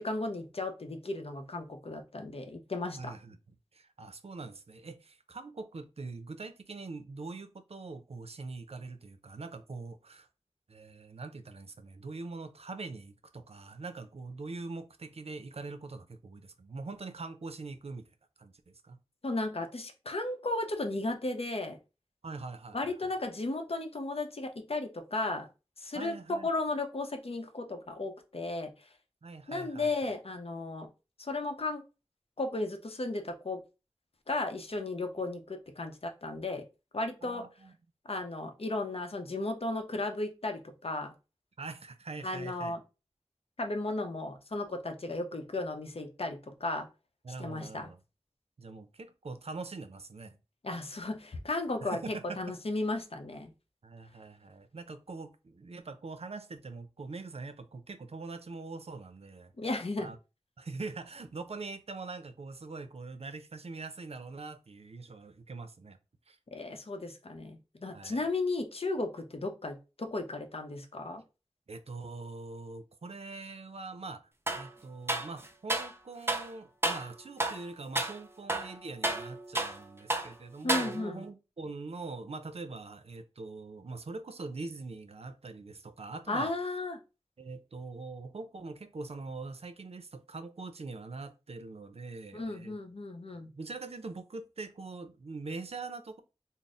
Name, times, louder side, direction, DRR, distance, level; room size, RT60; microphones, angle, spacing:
voice 1, 0.0-3.1 19.2-21.8 22.7-25.5 25.8-28.9 29.5-30.9 31.2-31.8 32.4-33.6 34.3-36.6 36.9-37.4 38.1-41.1 42.2-42.8 43.6-46.9 47.4-47.9 50.6-52.0 52.4-53.5 59.6-60.1 66.5-71.2 80.6-81.2 86.3-87.0 92.3-93.5, left 2 dB, 65° left, 0.6 m, -35 dB
voice 2, 3.0-10.3 10.7-18.1 18.4-19.0 22.2-23.1 25.9-26.5 29.2-30.0 37.2-37.8 41.6-42.8 47.2-48.0 48.6-50.4 51.8-52.4 53.8-59.5 60.0-60.2 60.6-66.0 66.3-66.4 67.9-68.3 71.7-86.5 87.4-92.7 93.5-96.2, right 3 dB, 70° right, 0.5 m, -43 dB
sound 1, 74.5-74.7 75.1-75.9 76.3-76.5 76.8-77.1 77.4-77.6 77.9-78.2 78.5-79.8 80.1-80.3 80.7-81.2, right 2 dB, 25° right, 0.5 m, -31 dB
3.6 x 2.0 x 4.0 m
wide cardioid pair, 60°, 11 cm